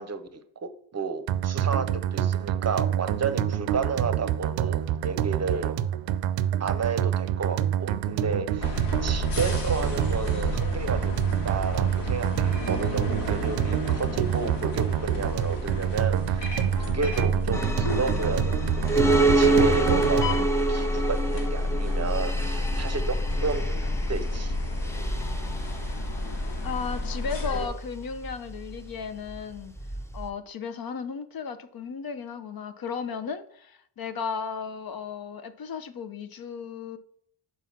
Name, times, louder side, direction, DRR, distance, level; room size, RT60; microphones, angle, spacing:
voice 1, 0.0-5.8 6.6-24.6, right 5 dB, 35° right, 0.7 m, -32 dB
sound 1, 1.3-20.5, right 10 dB, 85° right, 0.6 m, -27 dB
sound 2, 8.6-27.7, left 2 dB, 70° left, 1.7 m, -30 dB
sound 3, 17.5-30.3, right 2 dB, 5° left, 0.6 m, -28 dB
voice 2, 26.6-29.7 30.1-37.0, left 6 dB, 55° left, 0.8 m, -35 dB
5.8 x 4.8 x 5.7 m
cardioid pair, 85°, 44 cm